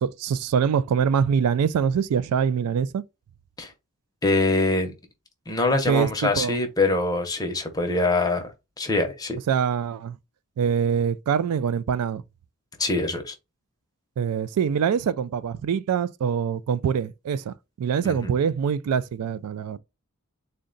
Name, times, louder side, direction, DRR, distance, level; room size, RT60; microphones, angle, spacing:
voice 1, 0.0-3.0 5.9-6.6 9.5-10.2 10.6-12.2 14.2-19.8, right 7 dB, 85° right, 0.3 m, -24 dB
voice 2, 4.2-4.9 5.5-9.4 12.8-13.3 18.0-18.3, left 2 dB, 15° left, 0.7 m, -24 dB
3.7 x 2.2 x 3.8 m
head